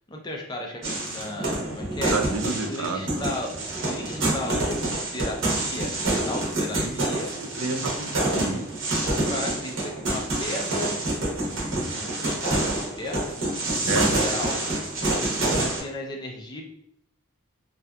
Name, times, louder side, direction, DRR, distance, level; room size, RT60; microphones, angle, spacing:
voice 1, 0.1-2.1 2.7-3.6 3.8-4.8 5.1-7.3 9.0-11.0 11.9-13.4 13.8-14.6 15.2-16.6, left 1 dB, 20° left, 0 dB, 0.3 m, -35 dB
sound 1, 0.8-15.8, right 2 dB, 60° right, 0.8 m, -27 dB
voice 2, 2.0-3.3 6.8-6.9 7.3-8.7 13.8-14.1, right 3 dB, 75° right, 6 dB, 0.4 m, -30 dB
2.6 x 2.3 x 2.2 m, 0.75 s
head